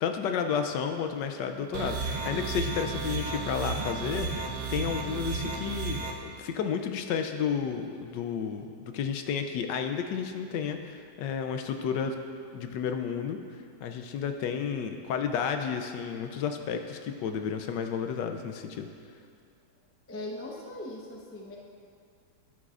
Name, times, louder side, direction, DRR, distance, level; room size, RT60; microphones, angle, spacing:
voice 1, 0.0-12.1 12.5-13.4 13.8-18.9, left 7 dB, 75° left, 6 dB, 1.2 m, -32 dB
sound 1, 1.7-6.1, right 4 dB, 65° right, 1.3 m, -33 dB
voice 2, 20.1-21.6, left 1 dB, 20° left, -1 dB, 0.3 m, -39 dB
12.0 x 10.0 x 2.5 m, 2.3 s
omnidirectional pair, 2.1 m